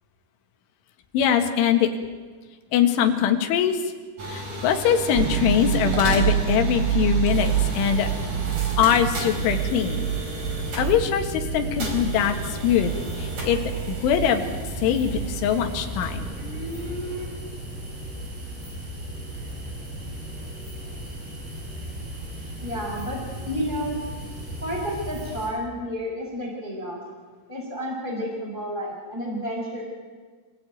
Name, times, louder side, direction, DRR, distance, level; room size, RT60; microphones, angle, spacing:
voice 1, 1.1-1.9 2.7-3.8 4.2-8.1 8.8-10.1 10.8-12.9 13.2-13.6 13.9-14.4 14.8-16.3, left 9 dB, 75° left, 5 dB, 4.1 m, -22 dB
sound 1, 4.2-17.3, equal, 35° right, 5.1 m, -35 dB
sound 2, 5.2-16.7, right 11 dB, 85° right, 2.2 m, -28 dB
sound 3, 7.3-25.5, right 1 dB, 60° right, 9.7 m, -36 dB
voice 2, 22.6-24.0 24.6-27.0 27.5-29.8, equal, 10° left, 0 dB, 4.6 m, -31 dB
27.0 x 17.5 x 9.4 m, 1.5 s
omnidirectional pair, 5.8 m